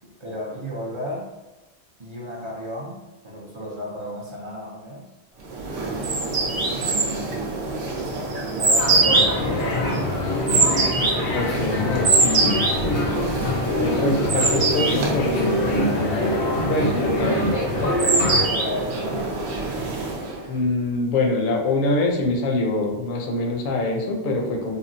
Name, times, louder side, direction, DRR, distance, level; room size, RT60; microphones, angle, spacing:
voice 1, 0.2-1.3 2.0-5.1 6.1-7.4 8.5-9.5 18.1-19.5, left 1 dB, 40° right, -5 dB, 0.5 m, -34 dB
sound 1, 5.5-20.5, right 3 dB, 75° right, 0.9 m, -24 dB
sound 2, 8.7-18.5, left 2 dB, 90° left, 0.9 m, -25 dB
voice 2, 11.3-12.7 13.8-16.2 16.7-17.6 20.5-24.8, left 2 dB, 60° left, 2 dB, 0.6 m, -25 dB
3.6 x 2.0 x 2.6 m, 1.1 s
omnidirectional pair, 1.1 m